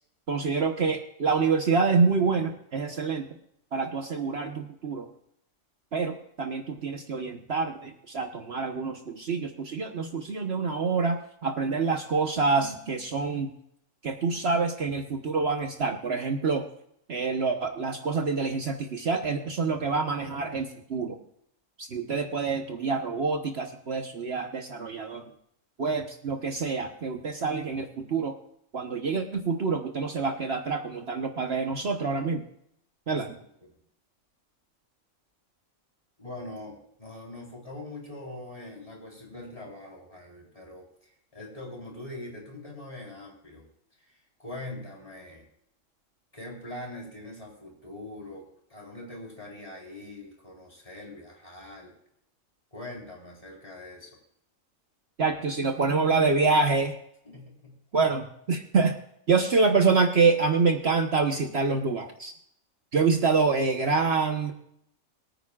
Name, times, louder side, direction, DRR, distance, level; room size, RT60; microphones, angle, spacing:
voice 1, 0.3-3.3 3.7-5.1 5.9-13.5 14.0-16.7 17.1-21.2 21.8-25.2 25.8-28.3 28.7-32.4 33.1-33.4 55.2-56.9 57.9-58.9 59.3-62.3 62.9-64.5, right 4 dB, 55° right, 4 dB, 1.3 m, -26 dB
voice 2, 33.1-33.7 36.2-43.7 44.1-45.5 46.3-48.4 48.7-51.9 52.7-54.2 57.2-57.8, left 1 dB, 25° left, -3 dB, 4.2 m, -43 dB
23.5 x 9.3 x 2.4 m, 0.72 s
omnidirectional pair, 1.4 m